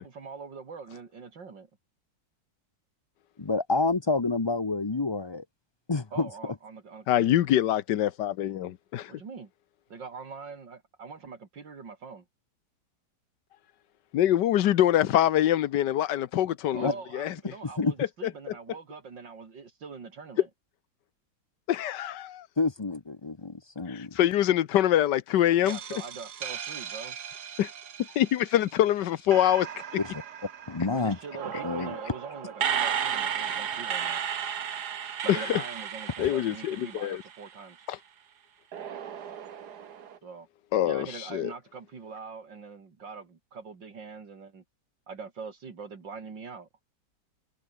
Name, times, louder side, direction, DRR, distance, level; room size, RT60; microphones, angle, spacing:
voice 1, 0.0-1.7 6.1-7.4 9.1-9.5 9.9-12.2 16.7-20.5 25.6-27.2 30.9-34.2 35.2-37.9 40.2-40.5 40.8-44.6 45.1-46.7, right 5 dB, 80° right, 3.5 m, -43 dB
voice 2, 3.4-5.4 5.9-6.3 16.8-16.9 17.6-17.9 22.6-24.2 30.0-30.1 30.7-31.2 31.6-32.0 36.2-36.3, left 3 dB, 35° left, 0.4 m, -28 dB
voice 3, 7.1-9.1 14.1-17.3 18.5-18.6 21.7-22.5 23.9-25.8 27.6-27.7 28.1-29.7 33.5-33.6 35.3-35.6 36.2-37.2 37.9-38.0 40.7-41.1 41.3-41.5, left 12 dB, 70° left, 1.5 m, -24 dB
sound 1, 25.7-28.8 29.3-37.7 38.7-40.2, right 8 dB, 65° right, 1.8 m, -35 dB
omnidirectional pair, 1.9 m